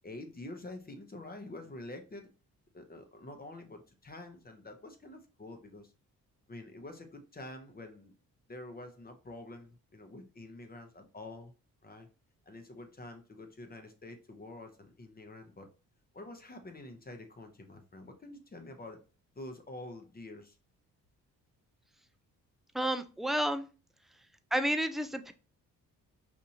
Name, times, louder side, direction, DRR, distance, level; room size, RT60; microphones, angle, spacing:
voice 1, 0.0-2.3 2.7-5.9 6.5-8.1 8.5-11.5 11.8-12.1 12.5-15.7 16.1-19.0 19.4-20.6, left 2 dB, 25° left, 0.7 m, -47 dB
voice 2, 22.7-23.6 24.5-25.3, right 1 dB, ahead, 0.4 m, -30 dB
4.3 x 2.5 x 2.7 m
supercardioid pair, 65°, 38 cm